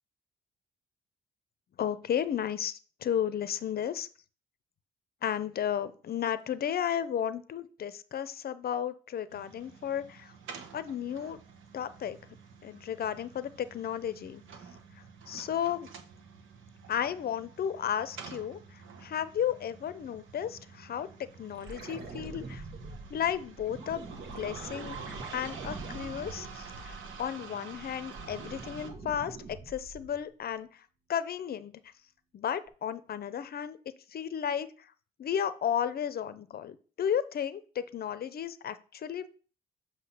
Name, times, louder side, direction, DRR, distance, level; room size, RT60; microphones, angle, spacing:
voice 1, 1.8-2.7 3.0-4.1 5.2-10.3 10.7-11.4 11.7-12.2 12.6-14.4 15.3-15.9 16.9-18.6 19.0-21.1 21.4-22.6 23.1-24.1 24.4-25.0 25.3-30.7 31.1-31.7 32.3-33.8 34.1-34.7 35.2-39.3, left 9 dB, 50° left, 14 dB, 0.6 m, -33 dB
sound 1, 9.3-28.9, right 6 dB, 85° right, 1.0 m, -49 dB
sound 2, 21.5-27.3 27.7-30.2 32.7-32.8, right 3 dB, 60° right, 1.4 m, -44 dB
7.7 x 2.8 x 5.7 m, 0.40 s
cardioid pair, 90°, 20 cm